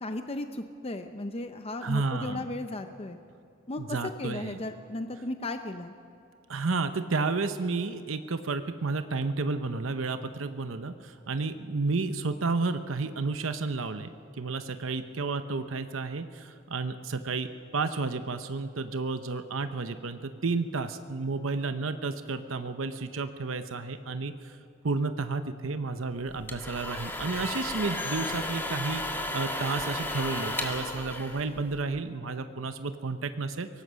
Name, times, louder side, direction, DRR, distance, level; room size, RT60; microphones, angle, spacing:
voice 1, 0.0-3.2 3.7-5.9, left 2 dB, 30° left, 7 dB, 0.7 m, -35 dB
voice 2, 1.8-2.5 3.8-4.6 6.5-14.1 14.4-24.6 24.8-33.7, right 3 dB, 80° right, 9 dB, 0.8 m, -31 dB
sound 1, 26.3-32.0, left 1 dB, 10° left, 1.8 m, -34 dB
23.5 x 18.5 x 6.3 m, 2.8 s
head